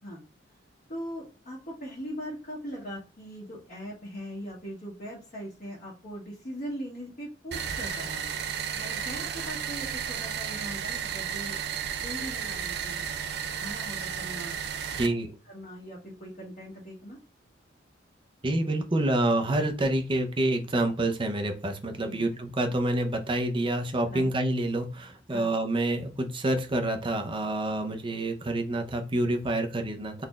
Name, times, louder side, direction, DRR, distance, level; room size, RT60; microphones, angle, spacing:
voice 1, 0.9-11.6 12.0-13.1 13.5-14.5 14.9-15.1 15.4-17.2 22.0-22.2 24.1-24.3 25.3-25.5, equal, 50° left, -7 dB, 1.7 m, -40 dB
sound 1, 7.5-15.1, right 8 dB, 60° right, 0.5 m, -33 dB
voice 2, 15.0-15.3 18.4-30.3, right 1 dB, 30° right, 5 dB, 0.7 m, -27 dB
4.0 x 3.4 x 2.3 m, 0.33 s
head